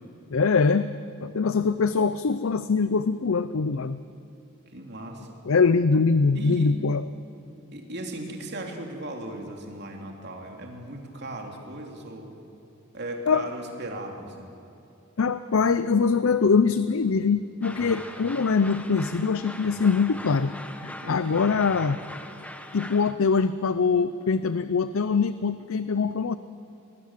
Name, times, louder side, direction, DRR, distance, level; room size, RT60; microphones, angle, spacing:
voice 1, 0.3-4.0 5.5-7.1 13.3-13.5 15.2-20.5 20.8-22.0 22.7-26.4, left 5 dB, 70° left, 13 dB, 0.6 m, -23 dB
voice 2, 4.7-5.3 6.3-6.8 7.7-12.4 12.9-14.5 21.0-21.4, right 1 dB, 50° right, 2 dB, 3.1 m, -37 dB
sound 1, 17.6-23.1, left 1 dB, 5° left, 1.0 m, -41 dB
24.5 x 20.0 x 7.5 m, 2.8 s
head